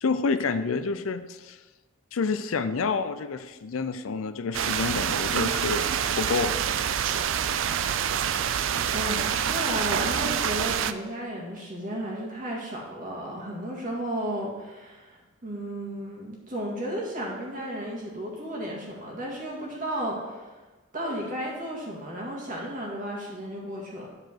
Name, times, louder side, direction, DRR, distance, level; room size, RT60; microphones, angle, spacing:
voice 1, 0.0-1.6 2.1-5.9 6.2-6.6, left 4 dB, 80° left, 11 dB, 0.5 m, -28 dB
sound 1, 4.5-10.9, right 8 dB, 65° right, 0.4 m, -26 dB
voice 2, 8.9-20.6 20.9-24.1, right 1 dB, 40° right, -3 dB, 2.0 m, -33 dB
9.7 x 4.9 x 4.5 m, 1.2 s
head